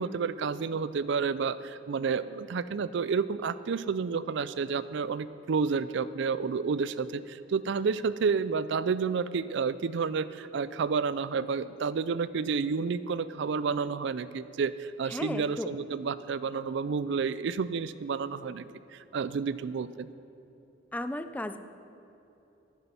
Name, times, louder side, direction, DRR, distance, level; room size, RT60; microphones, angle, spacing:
voice 1, 0.0-18.6 18.9-20.1, right 5 dB, 65° right, 15 dB, 0.4 m, -30 dB
voice 2, 15.1-15.8 20.9-21.6, left 1 dB, 10° left, 10 dB, 0.4 m, -35 dB
13.5 x 9.6 x 5.8 m, 2.9 s
head